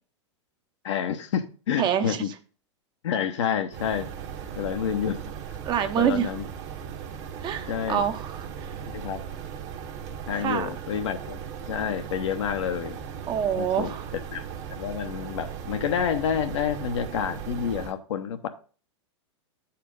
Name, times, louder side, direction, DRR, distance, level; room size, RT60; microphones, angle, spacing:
voice 1, 0.8-2.3 3.0-4.1 4.6-5.2 6.0-6.4 7.7-8.0 8.8-9.2 10.3-11.4 11.7-13.0 13.6-13.9 14.3-14.5 14.7-18.5, left 8 dB, 70° left, 7 dB, 1.0 m, -28 dB
voice 2, 1.8-2.2 5.6-6.3 7.4-8.8 10.3-10.7 13.3-14.1, right 9 dB, 30° right, 8 dB, 0.8 m, -26 dB
sound 1, 3.7-17.9, right 8 dB, 45° right, 1.2 m, -37 dB
7.5 x 4.4 x 5.2 m, 0.39 s
hypercardioid pair, 110°, 15 cm